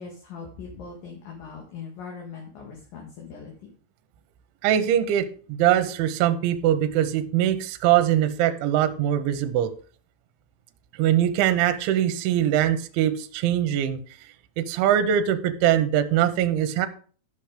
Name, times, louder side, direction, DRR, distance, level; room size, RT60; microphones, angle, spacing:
voice 1, 0.0-3.5, left 5 dB, 55° left, -1 dB, 3.0 m, -40 dB
voice 2, 4.6-9.7 11.0-14.0 14.6-16.9, right 11 dB, 80° right, 8 dB, 3.2 m, -22 dB
13.5 x 5.8 x 5.0 m, 0.41 s
omnidirectional pair, 5.5 m